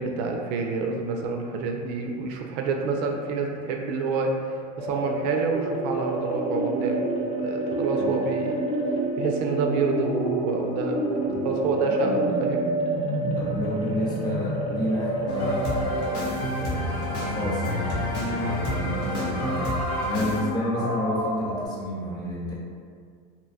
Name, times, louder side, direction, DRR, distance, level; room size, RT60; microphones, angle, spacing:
voice 1, 0.0-7.1 7.4-8.6 9.2-12.7, right 4 dB, 75° right, 2 dB, 0.4 m, -28 dB
sound 1, 4.8-16.3, right 1 dB, 35° left, 0.5 m, -31 dB
sound 2, 5.5-21.7, right 1 dB, 15° right, 0.6 m, -32 dB
voice 2, 13.3-22.5, left 1 dB, 20° left, -7 dB, 0.8 m, -31 dB
sound 3, 15.3-20.4, equal, 75° left, 0.7 m, -29 dB
2.7 x 2.2 x 2.6 m, 2.1 s
supercardioid pair, 120°, 21 cm